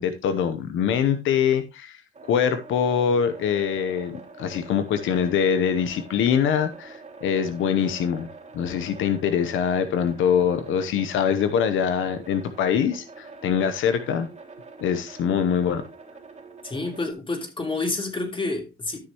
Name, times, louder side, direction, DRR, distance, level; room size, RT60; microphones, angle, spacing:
voice 1, 0.0-2.0 2.3-8.3 8.5-14.3 14.8-15.8, left 7 dB, 80° left, 0.9 m, -23 dB
sound 1, 2.1-17.1, right 4 dB, 35° right, 2.9 m, -45 dB
voice 2, 16.6-19.0, left 3 dB, 25° left, 3.2 m, -29 dB
13.0 x 6.4 x 3.0 m
cardioid pair, 90°, 20 cm